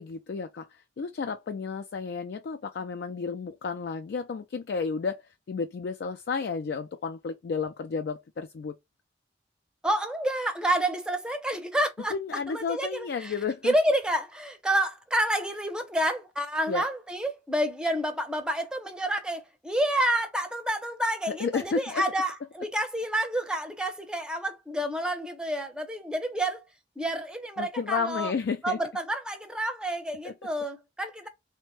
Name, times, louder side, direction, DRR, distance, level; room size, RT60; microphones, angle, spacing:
voice 1, 0.0-8.7 12.1-13.7 16.7-16.8 21.3-22.1 27.6-28.8 30.2-30.3, left 5 dB, 65° left, 0.3 m, -32 dB
voice 2, 9.8-12.1 12.5-13.3 13.6-26.6 27.0-28.3 28.6-31.3, right 1 dB, 5° right, 0.5 m, -29 dB
3.3 x 2.1 x 3.1 m
head